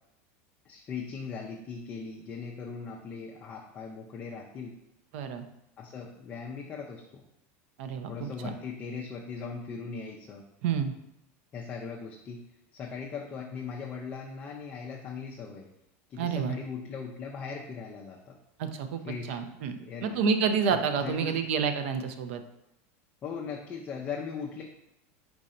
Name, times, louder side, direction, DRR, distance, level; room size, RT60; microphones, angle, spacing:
voice 1, 0.6-4.7 5.8-7.2 8.1-10.4 11.5-12.4 12.7-15.7 16.1-18.4 19.0-19.4 19.8-20.2 20.7-21.5 23.2-24.6, left 5 dB, 25° left, -2 dB, 0.5 m, -39 dB
voice 2, 5.1-5.5 7.8-8.5 10.6-10.9 16.2-16.6 18.6-19.0 19.3-19.8 20.0-22.4, right 6 dB, 70° right, 8 dB, 0.6 m, -29 dB
4.7 x 2.6 x 4.2 m, 0.83 s
supercardioid pair, 160°, 7 cm